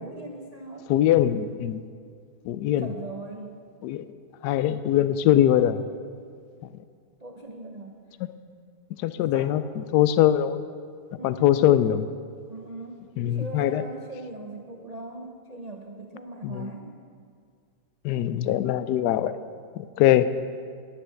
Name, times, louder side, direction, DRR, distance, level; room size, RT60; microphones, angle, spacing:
voice 1, 0.0-0.9 2.8-3.6 7.2-8.0 9.3-9.6 11.2-11.7 12.5-17.0, right 2 dB, 80° right, 2 dB, 0.3 m, -40 dB
voice 2, 0.9-1.8 2.5-2.9 3.8-4.1 4.4-5.8 8.2-8.3 9.0-10.6 11.2-12.0 13.2-13.8 16.4-16.7 18.0-19.3 19.8-20.3, left 12 dB, 75° left, 13 dB, 1.0 m, -22 dB
11.5 x 9.6 x 7.0 m, 2.1 s
omnidirectional pair, 2.1 m